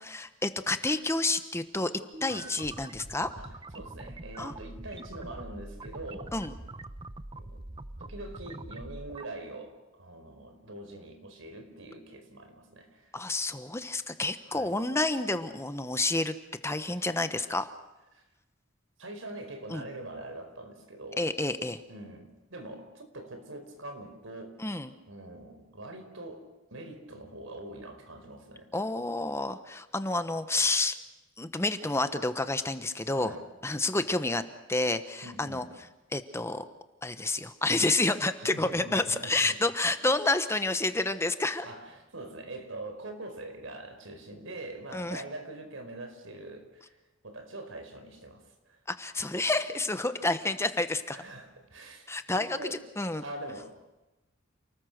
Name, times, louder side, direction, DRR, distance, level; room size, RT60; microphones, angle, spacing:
voice 1, 0.0-1.9 2.2-3.3 4.4-4.5 6.3-6.5 13.1-16.3 16.6-17.7 19.7-19.8 21.2-21.8 24.6-24.9 28.7-31.0 31.4-33.3 33.6-34.4 34.7-35.6 36.1-36.6 37.0-41.7 44.9-45.2 48.9-51.2 52.1-53.2, left 2 dB, 15° left, 10 dB, 1.1 m, -29 dB
sound 1, 2.1-9.3, right 2 dB, 25° right, 0.8 m, -44 dB
voice 2, 3.4-6.3 7.3-7.6 8.0-13.2 14.5-14.7 18.1-18.2 19.0-21.3 21.9-24.6 25.1-26.4 26.7-28.7 33.1-33.4 35.2-35.7 38.5-39.5 41.6-47.0 47.2-48.8 51.1-52.1 52.3-52.8 53.2-54.0, right 2 dB, 85° right, 6 dB, 4.7 m, -43 dB
29.5 x 20.0 x 6.7 m, 1.0 s
head